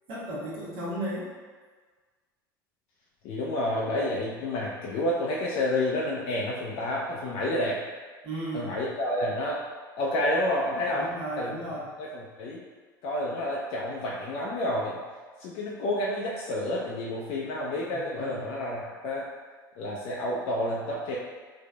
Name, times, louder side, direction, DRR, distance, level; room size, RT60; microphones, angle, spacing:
voice 1, 0.1-1.3 8.2-8.8 10.9-11.9 17.9-18.4, right 1 dB, 50° right, -7 dB, 1.2 m, -35 dB
voice 2, 3.2-7.8 8.5-9.6 10.0-11.1 11.4-11.5 12.0-12.6 13.0-15.0 15.4-19.3 19.8-21.2, left 1 dB, 50° left, -4 dB, 0.5 m, -29 dB
3.6 x 3.2 x 2.2 m, 1.5 s
figure-of-eight pair, 75°, 12 cm